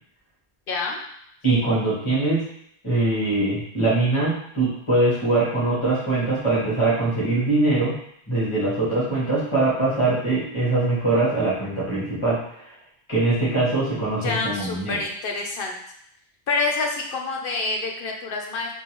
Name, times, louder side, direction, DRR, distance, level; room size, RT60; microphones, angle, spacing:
voice 1, 0.7-1.0 14.2-15.8 16.5-18.7, left 3 dB, 60° left, 1 dB, 0.8 m, -27 dB
voice 2, 1.4-2.4 2.8-7.9 8.3-12.4 13.1-15.0, right 2 dB, 25° left, -9 dB, 1.5 m, -22 dB
3.6 x 2.6 x 3.0 m, 0.70 s
omnidirectional pair, 1.1 m